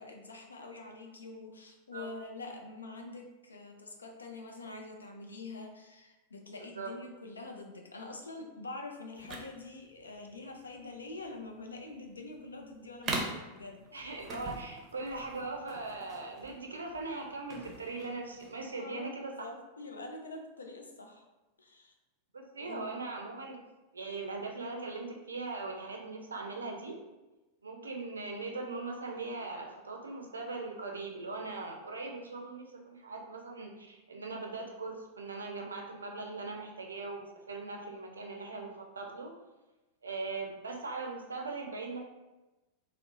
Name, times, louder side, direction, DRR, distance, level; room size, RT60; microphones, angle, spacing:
voice 1, 0.0-13.9 18.8-21.3 21.6-21.9 22.6-22.9, left 3 dB, 75° left, 2 dB, 0.4 m, -45 dB
sound 1, 9.1-18.6, right 2 dB, 25° right, 0.6 m, -43 dB
voice 2, 13.9-19.5 22.3-23.6 23.9-27.0 27.6-39.3 40.0-42.0, right 3 dB, 75° right, 1 dB, 0.5 m, -40 dB
2.6 x 2.0 x 3.7 m, 1.1 s
figure-of-eight pair, 90°, 0 cm